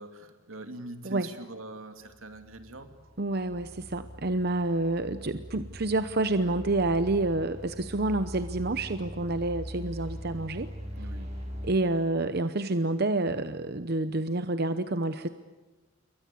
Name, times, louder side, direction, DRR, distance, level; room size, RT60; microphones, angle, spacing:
voice 1, 0.0-2.9 11.0-11.3, right 2 dB, 80° right, 7 dB, 2.7 m, -43 dB
sound 1, 2.0-11.7, equal, 30° right, 6.7 m, -42 dB
voice 2, 3.2-10.7 11.6-15.3, right 2 dB, 50° right, 10 dB, 0.8 m, -28 dB
28.5 x 23.0 x 8.5 m, 1.2 s
head